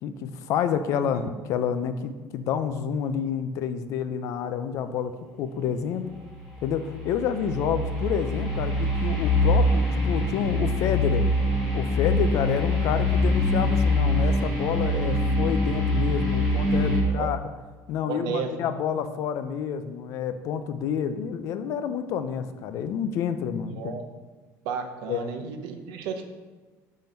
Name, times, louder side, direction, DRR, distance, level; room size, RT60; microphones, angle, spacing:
voice 1, 0.0-5.1 5.4-6.0 6.6-11.3 11.7-17.4 17.9-23.9 25.1-25.3, left 8 dB, 50° left, 10 dB, 0.4 m, -29 dB
sound 1, 6.3-17.0, left 1 dB, ahead, 1.5 m, -24 dB
voice 2, 18.1-18.5 23.8-24.0 24.6-26.3, right 6 dB, 75° right, 6 dB, 0.7 m, -33 dB
5.9 x 3.7 x 5.1 m, 1.3 s
cardioid pair, 180°, 7 cm